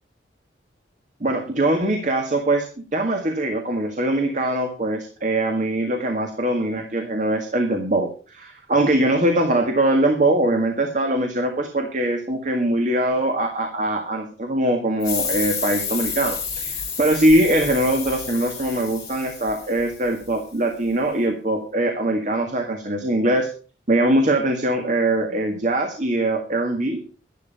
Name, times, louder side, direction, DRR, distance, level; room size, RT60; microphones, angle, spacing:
voice 1, 1.2-23.5 23.9-27.0, right 1 dB, 45° right, 4 dB, 1.9 m, -22 dB
sound 1, 15.0-20.3, left 6 dB, 20° left, 4.9 m, -30 dB
12.5 x 11.0 x 5.6 m, 0.37 s
head